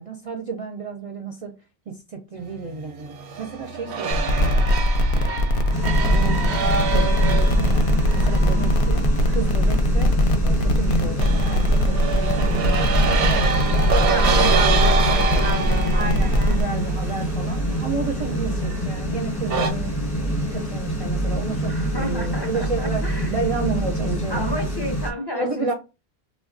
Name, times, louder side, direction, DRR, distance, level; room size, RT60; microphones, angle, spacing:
voice 1, 0.0-1.6 1.9-4.7 5.1-5.5 6.1-9.0 9.3-10.1 10.4-13.9 14.2-14.7 15.0-15.6 15.9-24.5 25.3-25.7, right 4 dB, 50° right, 0.4 m, -32 dB
sound 1, 3.0-9.7 11.2-18.8 19.5-19.7, right 5 dB, 85° right, 0.9 m, -27 dB
sound 2, 4.1-16.6, equal, 60° left, 0.7 m, -20 dB
sound 3, 5.7-25.1, equal, 25° left, 0.8 m, -26 dB
voice 2, 8.2-8.7 14.0-16.6 21.6-23.4 24.3-25.7, equal, 45° left, 0.3 m, -32 dB
3.3 x 2.2 x 2.5 m
omnidirectional pair, 1.1 m